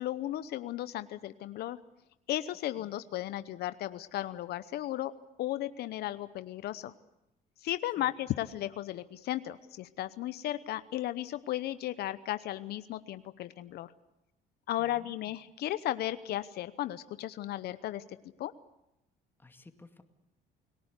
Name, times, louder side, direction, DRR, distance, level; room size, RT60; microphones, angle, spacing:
voice 1, 0.0-1.8 2.3-5.1 5.4-6.9 7.6-13.9 14.7-18.0 18.4-18.5, left 13 dB, 70° left, 13 dB, 0.9 m, -35 dB
voice 2, 14.8-15.3 19.4-20.0, left 2 dB, 10° left, 7 dB, 2.2 m, -55 dB
29.5 x 18.5 x 8.2 m, 0.88 s
cardioid pair, 110°, 17 cm